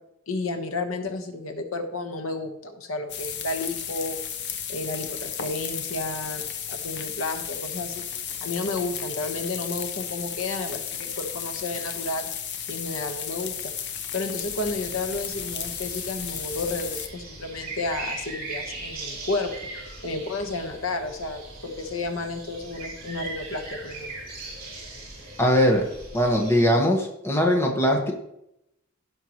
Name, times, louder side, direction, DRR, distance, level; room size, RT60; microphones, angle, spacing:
voice 1, 0.3-4.2 4.7-6.4 6.7-8.0 8.4-12.3 12.7-13.7 14.1-19.5 20.0-24.1, left 2 dB, 70° left, 5 dB, 1.3 m, -31 dB
sound 1, 3.1-17.1, left 8 dB, 55° left, 0.8 m, -34 dB
sound 2, 14.4-26.7, right 3 dB, 45° right, 4.2 m, -40 dB
voice 2, 25.4-25.8 26.1-28.1, equal, 10° left, 0 dB, 1.4 m, -20 dB
16.5 x 5.8 x 3.1 m, 0.80 s
head